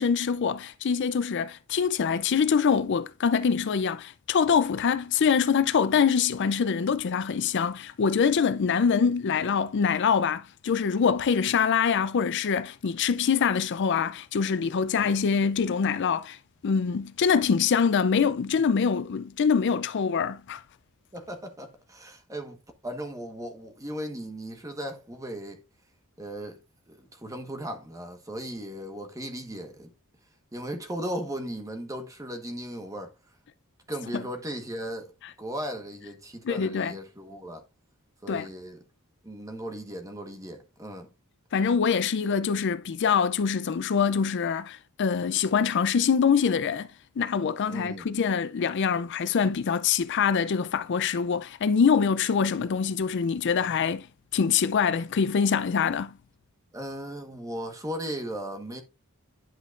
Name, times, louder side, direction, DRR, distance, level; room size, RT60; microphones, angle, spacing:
voice 1, 0.0-16.4 16.6-20.6 34.1-34.2 36.4-36.9 38.3-38.5 41.5-46.9 47.2-54.1 54.3-56.1, left 6 dB, 55° left, 0.4 m, -24 dB
voice 2, 21.1-22.6 22.8-25.6 26.2-26.6 26.9-29.9 30.5-33.1 33.9-35.1 35.4-37.6 38.2-38.8 39.2-41.1 47.7-48.1 56.7-58.8, equal, 15° right, 1.2 m, -37 dB
10.5 x 5.7 x 2.4 m
head